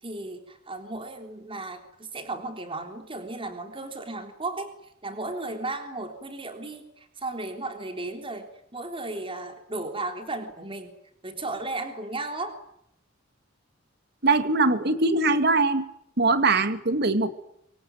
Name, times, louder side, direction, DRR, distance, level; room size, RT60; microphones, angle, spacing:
voice 1, 0.0-10.9 11.2-12.6, right 2 dB, 25° right, 6 dB, 3.6 m, -35 dB
voice 2, 14.2-15.9 16.2-17.3, right 3 dB, 55° right, 11 dB, 2.2 m, -22 dB
25.0 x 24.5 x 9.4 m, 0.76 s
head